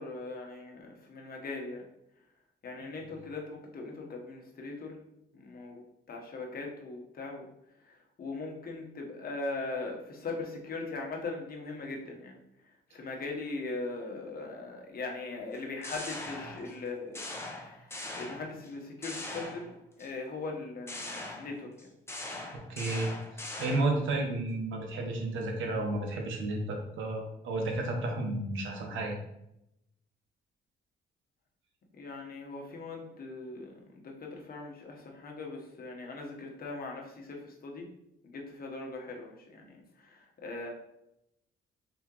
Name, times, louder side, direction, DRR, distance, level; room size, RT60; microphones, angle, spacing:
voice 1, 0.0-1.9 2.6-5.0 5.3-7.5 7.8-17.2 17.5-19.7 20.0-21.9 31.9-37.9 38.2-40.7, left 3 dB, 50° left, 0 dB, 1.1 m, -40 dB
sound 1, 15.5-16.8 17.1-18.7 19.0-20.1 20.9-24.0, left 2 dB, 10° left, 0.8 m, -41 dB
voice 2, 22.7-23.1 23.6-29.2, right 2 dB, 75° right, 2 dB, 1.0 m, -32 dB
4.2 x 3.5 x 3.0 m, 0.83 s
cardioid pair, 90°, 20 cm